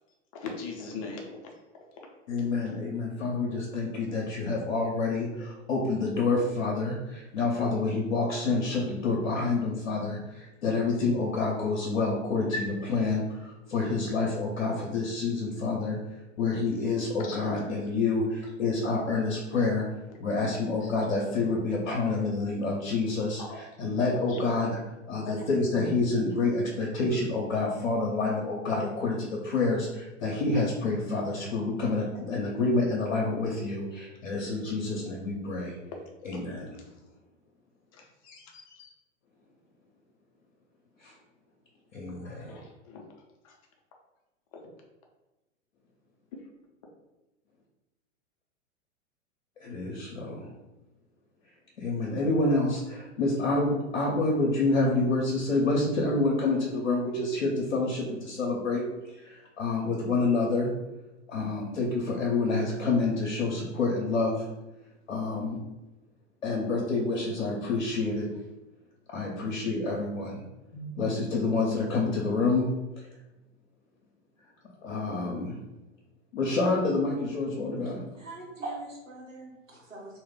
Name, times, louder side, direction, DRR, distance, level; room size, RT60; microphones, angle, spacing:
voice 1, 0.3-1.5 1.9-2.1 17.2-17.6 19.5-19.7 23.4-23.6 24.3-24.7 25.2-25.4 25.8-25.9 36.3-36.6 37.9-38.9 42.2-43.0 43.4-43.6 44.5-44.7, left 4 dB, 30° left, 1 dB, 0.5 m, -41 dB
voice 2, 2.3-16.0 16.4-19.9 20.2-24.8 25.1-35.8 36.2-36.7 41.0-41.1 41.9-42.6 49.6-50.5 51.8-58.8 59.2-60.7 61.3-64.4 65.1-65.6 66.4-68.3 69.1-70.4 70.7-72.7 74.8-75.6 76.3-78.0, left 3 dB, 65° left, -3 dB, 0.7 m, -28 dB
voice 3, 77.8-80.2, right 2 dB, 85° right, -3 dB, 0.9 m, -42 dB
2.2 x 2.1 x 3.5 m, 1.0 s
figure-of-eight pair, 100°, 38 cm